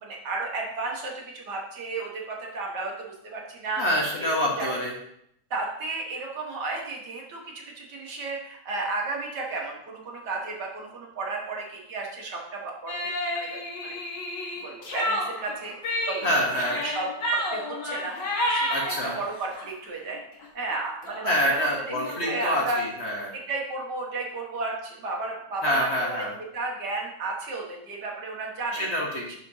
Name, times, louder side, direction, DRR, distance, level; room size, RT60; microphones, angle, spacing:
voice 1, 0.0-3.8 4.2-4.7 5.5-13.9 14.6-17.1 17.3-18.2 18.5-22.8 23.3-26.3 26.5-28.9, right 3 dB, 65° right, -1 dB, 2.0 m, -33 dB
voice 2, 3.8-4.9 16.2-16.8 18.7-19.2 21.2-23.3 25.6-26.3 28.8-29.3, equal, 40° left, -2 dB, 1.3 m, -26 dB
sound 1, 12.9-19.7 20.1-20.5 20.7-20.8 21.0-22.5, left 1 dB, 70° left, 2.1 m, -31 dB
11.5 x 5.1 x 2.7 m, 0.75 s
omnidirectional pair, 2.0 m